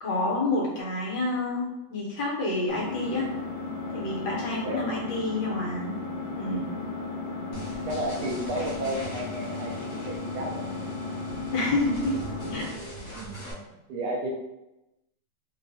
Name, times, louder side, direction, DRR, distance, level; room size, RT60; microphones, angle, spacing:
voice 1, 0.0-3.3 3.9-5.9 6.4-6.7 11.5-12.1 12.5-12.7, left 2 dB, 70° left, -4 dB, 1.4 m, -28 dB
Engine, 2.7-12.7, left 3 dB, 90° left, 1.3 m, -35 dB
sound 1, 7.5-13.5, equal, 50° left, 1.0 m, -41 dB
voice 2, 7.9-10.7 12.7-12.8 13.1-14.3, right 1 dB, 70° right, -1 dB, 1.1 m, -33 dB
3.7 x 2.1 x 2.6 m, 0.93 s
omnidirectional pair, 1.9 m